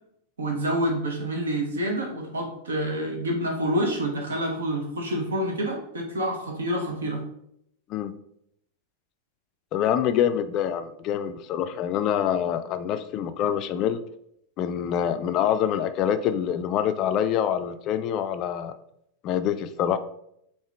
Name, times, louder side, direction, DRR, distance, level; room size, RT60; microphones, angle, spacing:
voice 1, 0.4-7.2, equal, 70° right, 1 dB, 0.8 m, -27 dB
voice 2, 9.7-14.0 14.6-18.7 19.2-20.0, left 9 dB, 35° left, 10 dB, 0.3 m, -25 dB
4.6 x 2.8 x 3.2 m, 0.74 s
figure-of-eight pair, 90°, 0 cm